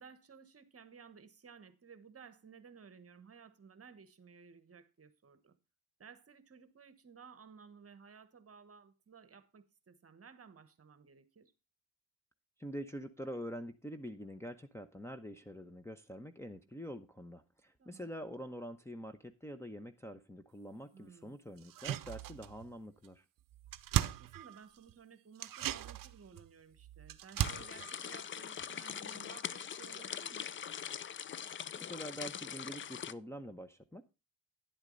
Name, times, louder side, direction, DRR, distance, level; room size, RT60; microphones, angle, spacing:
voice 1, 0.0-5.6 6.0-11.5 17.8-18.1 20.9-21.4 24.0-30.5, right 6 dB, 35° right, 1.3 m, -57 dB
voice 2, 12.6-23.2 31.8-34.0, equal, 5° left, 0.9 m, -45 dB
sound 1, 21.6-22.8 23.0-23.1 23.4-24.9 25.4-29.1 29.4-29.5, right 12 dB, 55° right, 0.7 m, -38 dB
sound 2, 27.4-33.1, left 8 dB, 30° left, 0.4 m, -42 dB
10.5 x 8.1 x 3.9 m
cardioid pair, 85°, 41 cm